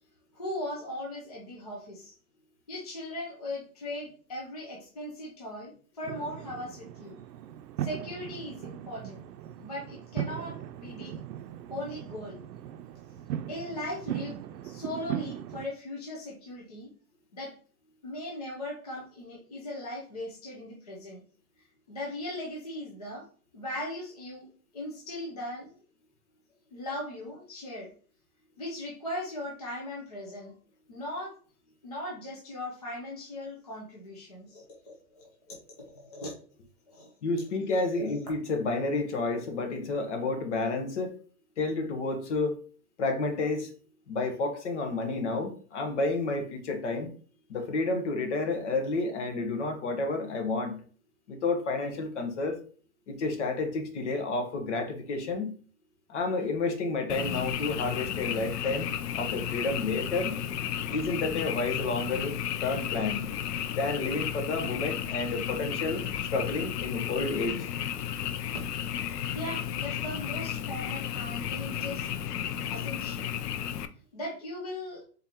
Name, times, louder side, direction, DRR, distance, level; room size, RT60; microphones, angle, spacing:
voice 1, 0.3-2.1 2.7-7.2 7.8-9.2 9.6-11.2 11.7-12.4 13.5-14.4 14.6-16.9 17.3-17.5 18.0-21.2 21.9-23.3 23.5-25.8 26.7-27.9 28.6-30.5 30.9-31.3 31.8-36.3 36.9-37.1 38.0-38.2 69.3-72.1 72.7-73.3 74.1-75.0, left 1 dB, 25° left, -3 dB, 0.5 m, -39 dB
sound 1, 6.0-15.7, right 10 dB, 85° right, 0.6 m, -38 dB
voice 2, 37.2-41.2 41.6-42.5 43.0-43.7 44.1-47.1 47.5-50.8 51.3-52.6 53.1-55.5 56.1-58.9 59.1-60.4 60.9-62.3 62.6-63.2 63.7-67.7, left 3 dB, 45° left, 5 dB, 0.9 m, -30 dB
Frog, 57.1-73.9, left 9 dB, 80° left, 0.6 m, -33 dB
3.8 x 3.5 x 2.8 m, 0.43 s
hypercardioid pair, 175°, 47 cm